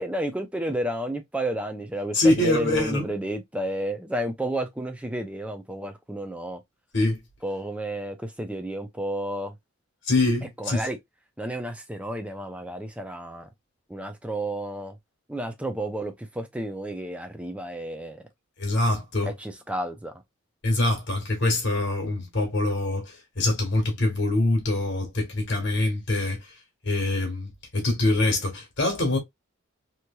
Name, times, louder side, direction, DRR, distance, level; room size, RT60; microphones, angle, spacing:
voice 1, 0.0-6.6 7.4-9.5 10.6-11.0 11.4-13.5 13.9-15.0 15.3-18.2 19.2-20.1, right 1 dB, 5° right, 0.4 m, -31 dB
voice 2, 2.1-3.0 6.9-7.2 10.0-10.9 18.6-19.3 20.6-26.4 26.8-29.2, left 2 dB, 55° left, 1.3 m, -24 dB
3.0 x 2.8 x 2.2 m
head